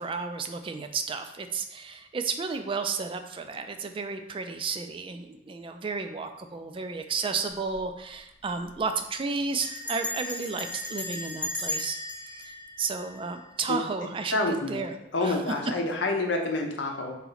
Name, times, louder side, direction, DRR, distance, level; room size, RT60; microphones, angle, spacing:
voice 1, 0.0-14.9 15.2-15.4, right 4 dB, 30° right, 7 dB, 0.3 m, -33 dB
Bell, 7.5-7.8 8.1-8.2 8.4-8.8 9.6-13.7, left 2 dB, 5° left, 0.8 m, -36 dB
voice 2, 14.3-14.8 15.1-17.2, left 2 dB, 80° left, 2 dB, 0.7 m, -28 dB
4.0 x 2.9 x 3.9 m, 0.88 s
head